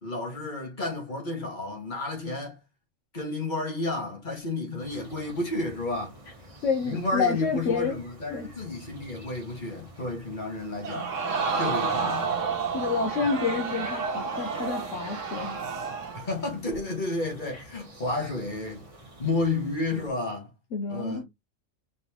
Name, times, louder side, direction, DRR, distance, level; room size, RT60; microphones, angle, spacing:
voice 1, 0.0-2.6 3.1-6.2 6.8-11.1 11.5-12.4 16.1-18.8 19.2-20.5 20.9-21.2, left 2 dB, 35° left, 1.7 m, -31 dB
sound 1, 4.8-20.1, equal, 25° right, 1.1 m, -50 dB
voice 2, 6.6-8.0 8.3-8.5 11.5-11.6 11.9-12.0 12.7-15.6 17.5-17.6 20.7-21.2, left 5 dB, 70° left, 1.1 m, -29 dB
Crowd, 10.8-16.3 16.7-16.8, right 5 dB, 70° right, 1.3 m, -30 dB
4.3 x 3.4 x 2.9 m
omnidirectional pair, 1.4 m